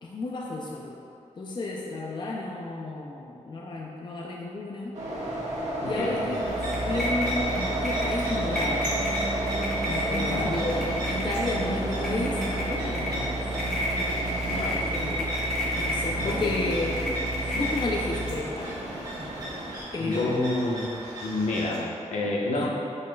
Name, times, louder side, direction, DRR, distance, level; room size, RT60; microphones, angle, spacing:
voice 1, 0.0-1.0 1.4-5.0 5.8-6.5 6.8-9.1 9.8-13.2 14.7-15.3 15.7-18.8 19.9-20.3 22.5-22.7, left 2 dB, 40° left, -2 dB, 0.5 m, -32 dB
sound 1, 4.9-19.8, right 1 dB, 70° right, 1.4 m, -32 dB
voice 2, 5.8-6.2 10.1-10.5 13.1-13.3 14.5-14.8 16.1-16.7 20.0-20.8 21.2-22.7, left 2 dB, 80° left, -3 dB, 1.1 m, -29 dB
sound 2, 6.3-21.8, right 1 dB, 35° right, 1.5 m, -39 dB
sound 3, 6.5-18.3, equal, 5° left, 1.3 m, -31 dB
10.0 x 5.5 x 2.3 m, 2.6 s
wide cardioid pair, 170°, 12 cm